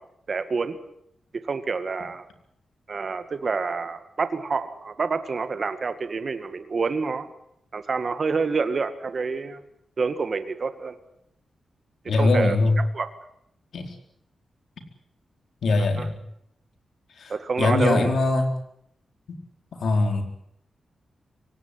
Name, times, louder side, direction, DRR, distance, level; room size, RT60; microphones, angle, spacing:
voice 1, 0.3-0.8 1.4-2.3 2.9-7.3 7.7-9.6 10.0-11.0 12.2-12.6 12.9-13.1 16.0-16.1 17.3-18.1, right 4 dB, 35° right, 10 dB, 2.0 m, -27 dB
voice 2, 12.1-12.8 13.7-13.9 15.6-16.2 17.2-18.5 19.3-19.4 19.8-20.2, left 3 dB, 60° left, 5 dB, 4.2 m, -22 dB
25.0 x 17.5 x 9.8 m, 0.75 s
wide cardioid pair, 175°, 0 cm